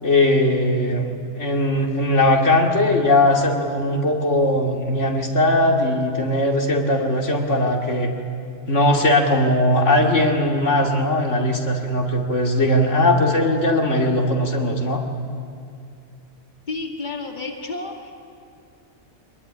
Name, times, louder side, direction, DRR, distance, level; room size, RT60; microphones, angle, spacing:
voice 1, 0.0-8.1 8.7-15.0, left 1 dB, 80° left, 0 dB, 2.9 m, -19 dB
voice 2, 16.7-18.1, left 3 dB, 40° left, 1 dB, 2.3 m, -31 dB
25.0 x 21.5 x 9.9 m, 2.4 s
omnidirectional pair, 1.2 m